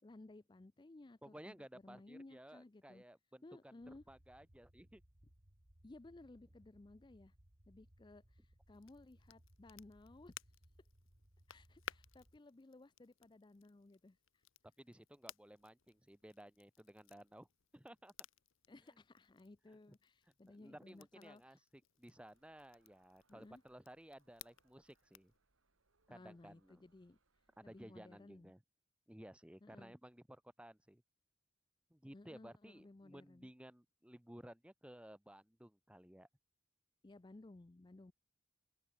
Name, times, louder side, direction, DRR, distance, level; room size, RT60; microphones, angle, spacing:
voice 1, 0.0-1.6 1.8-3.0 3.4-4.0 5.8-7.3 7.7-10.3 11.5-14.4 18.7-21.6 23.3-23.6 26.1-27.2 27.6-28.5 29.6-30.0 32.1-33.5 37.0-38.1, left 2 dB, 20° left, 0.4 m, -58 dB
voice 2, 1.2-5.0 14.8-17.5 17.7-18.1 20.5-21.6 22.0-25.3 26.1-26.8 27.6-28.6 29.1-31.0 31.9-36.3, equal, 5° right, 1.2 m, -57 dB
sound 1, 3.8-12.4, right 1 dB, 40° right, 2.7 m, -67 dB
Crackle, 8.7-25.4, left 9 dB, 85° left, 1.0 m, -59 dB
sound 2, 22.0-27.9, right 3 dB, 90° right, 2.7 m, -81 dB
open air
head